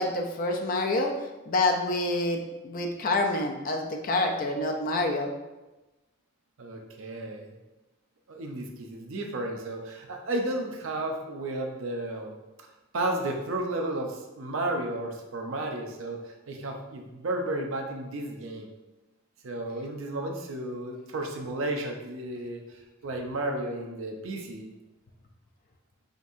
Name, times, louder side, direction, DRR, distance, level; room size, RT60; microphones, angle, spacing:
voice 1, 0.0-5.3, left 2 dB, 45° left, 3 dB, 0.5 m, -27 dB
voice 2, 6.6-7.5 8.3-12.4 12.9-18.7 19.4-22.6 23.0-24.7, right 2 dB, 75° right, 2 dB, 0.6 m, -33 dB
5.1 x 2.7 x 2.6 m, 1.1 s
head